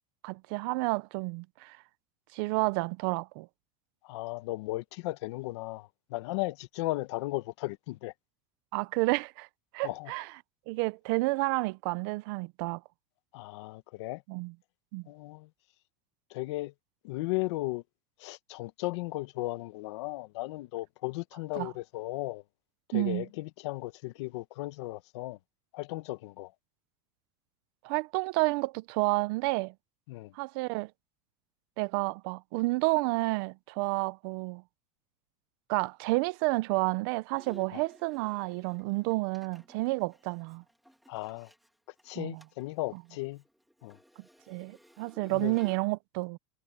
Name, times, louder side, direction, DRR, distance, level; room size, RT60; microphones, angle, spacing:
voice 1, 0.2-1.8 2.3-3.5 8.7-9.5 9.7-10.3 10.7-12.8 14.3-14.5 14.9-15.0 21.6-21.7 22.9-23.3 27.8-29.7 30.4-30.9 31.8-34.6 35.7-40.6 42.2-42.4 42.9-43.0 44.5-46.4, right 24 dB, 45° right, 0.5 m, -30 dB
voice 2, 4.0-8.1 9.8-10.1 13.3-14.2 15.1-15.5 16.3-16.7 17.0-17.8 18.2-22.4 22.9-25.4 25.7-26.5 30.1-30.3 37.7-37.8 41.1-41.5 42.0-43.4 43.8-44.0 45.3-45.6, left 20 dB, 60° left, 1.1 m, -36 dB
Bowed string instrument, 37.4-41.7 42.0-42.1 42.4-42.7 43.0-45.8, equal, ahead, 2.5 m, -56 dB
supercardioid pair, 180°, 16 cm